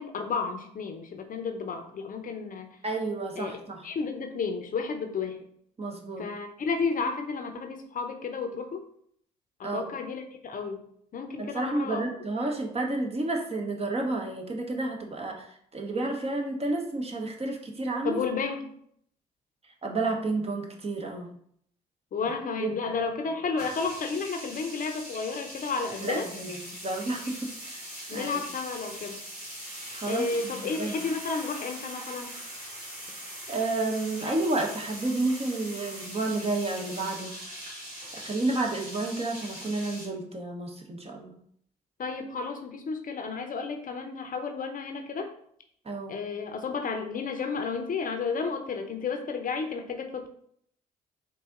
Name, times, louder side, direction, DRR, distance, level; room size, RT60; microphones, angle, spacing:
voice 1, 0.0-2.7 3.4-3.6 3.8-5.4 6.2-8.8 9.6-10.8 11.1-12.1 18.0-18.7 22.1-26.3 28.1-29.2 30.1-32.4 42.0-45.3 46.1-50.3, left 4 dB, 45° left, 5 dB, 0.7 m, -32 dB
voice 2, 2.8-3.9 5.8-6.2 9.6-9.9 11.4-18.2 19.8-21.3 22.6-22.7 26.0-27.8 28.1-28.4 29.9-31.0 33.5-37.3 38.1-41.3 45.8-46.2, right 2 dB, 30° right, 2 dB, 1.0 m, -31 dB
sound 1, 23.6-40.1, equal, 85° right, 1.4 m, -41 dB
3.9 x 2.7 x 3.7 m, 0.66 s
hypercardioid pair, 50°, 19 cm